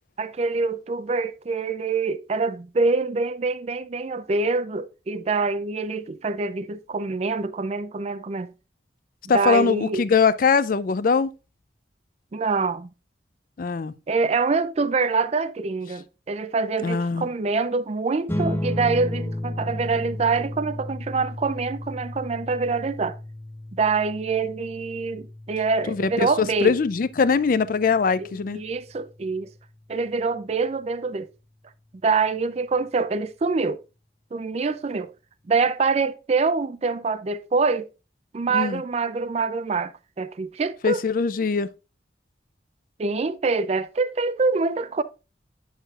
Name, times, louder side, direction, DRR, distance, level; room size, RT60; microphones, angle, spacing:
voice 1, 0.2-8.5 9.3-10.0 12.3-12.9 14.1-23.2 23.7-26.7 28.2-29.5 29.9-31.3 32.0-33.8 34.3-35.1 35.5-37.9 38.3-41.0 43.0-45.0, right 4 dB, 35° right, 0.4 m, -25 dB
voice 2, 9.3-11.3 13.6-13.9 16.8-17.3 25.9-28.6 38.5-38.8 40.8-41.7, left 5 dB, 50° left, 0.4 m, -22 dB
sound 1, 18.3-29.0, left 1 dB, 10° left, 0.8 m, -34 dB
8.1 x 6.4 x 2.4 m
head